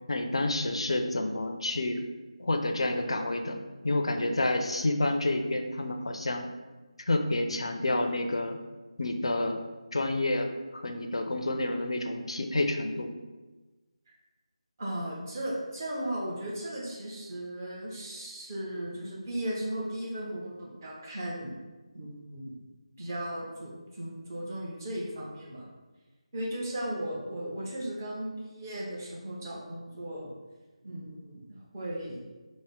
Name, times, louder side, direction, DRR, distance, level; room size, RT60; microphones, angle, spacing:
voice 1, 0.1-2.0 2.4-3.6 3.8-6.4 7.1-8.6 9.0-9.6 9.9-13.1, left 2 dB, 60° left, 5 dB, 0.4 m, -29 dB
voice 2, 14.8-21.5 21.9-22.6 23.0-25.7 26.3-30.3 30.8-32.2, right 1 dB, 30° right, -4 dB, 0.8 m, -36 dB
3.4 x 2.0 x 3.7 m, 1.2 s
figure-of-eight pair, 160°, 3 cm